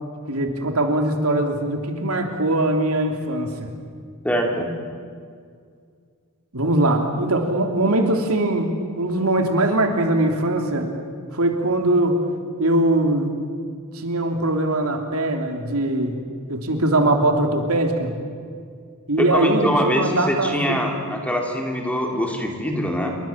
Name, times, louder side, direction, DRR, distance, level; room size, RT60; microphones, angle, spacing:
voice 1, 0.3-3.7 6.5-10.9 11.3-12.3 12.6-13.3 13.9-16.2 16.5-18.1 19.1-20.8, right 1 dB, 70° right, 4 dB, 3.1 m, -21 dB
voice 2, 4.2-4.7 19.2-23.1, equal, 5° left, 1 dB, 3.6 m, -23 dB
28.5 x 24.0 x 7.4 m, 2.1 s
head